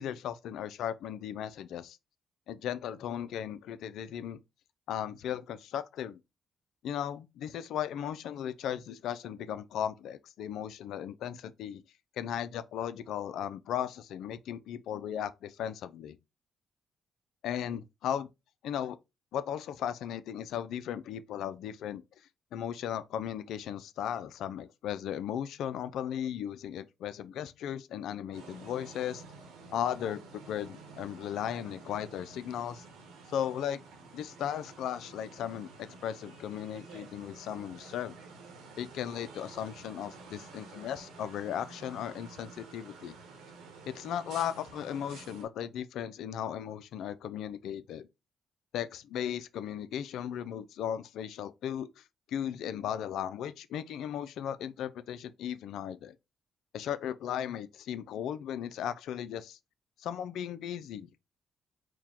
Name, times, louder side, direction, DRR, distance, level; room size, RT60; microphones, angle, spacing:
voice 1, 0.0-2.0 2.5-4.4 4.9-6.2 6.8-11.8 12.2-16.2 17.4-18.3 18.6-19.0 19.3-22.0 22.5-29.2 29.7-32.8 33.3-33.8 34.1-38.2 38.8-43.2 43.9-48.1 48.7-52.0 52.3-56.1 56.7-59.6 60.0-61.2, left 9 dB, 80° left, 0.4 m, -36 dB
sound 1, 28.3-45.4, right 4 dB, 90° right, 1.3 m, -51 dB
4.6 x 2.2 x 3.6 m
supercardioid pair, 70°, 0 cm